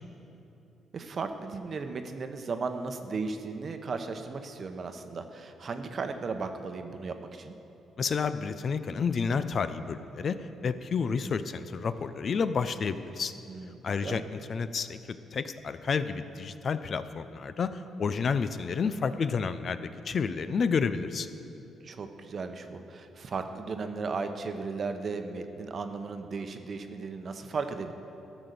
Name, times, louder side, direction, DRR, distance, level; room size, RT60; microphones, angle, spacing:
voice 1, 0.9-7.5 13.5-14.2 21.8-27.9, right 4 dB, 45° right, 7 dB, 0.8 m, -36 dB
voice 2, 8.0-10.4 10.6-13.3 13.8-21.3, left 5 dB, 50° left, 12 dB, 0.4 m, -30 dB
13.0 x 6.1 x 6.8 m, 2.9 s
cardioid pair, 90°, 0 cm